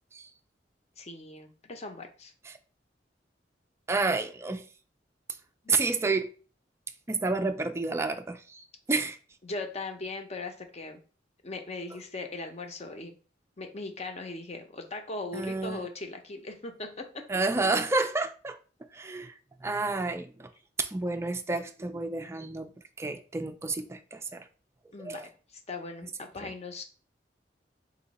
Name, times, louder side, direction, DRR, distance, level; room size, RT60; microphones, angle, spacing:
voice 1, 1.0-2.3 5.6-5.8 9.4-11.0 11.4-13.1 13.6-17.2 24.9-25.2 25.5-26.8, left 3 dB, 40° left, 0.7 m, -39 dB
voice 2, 3.9-4.6 5.7-6.3 7.1-9.2 15.3-15.8 17.3-18.6 18.9-20.5 20.8-22.7 23.0-24.4 25.0-25.3 26.4-26.5, right 3 dB, 15° right, 0.3 m, -30 dB
4.1 x 2.8 x 4.0 m
head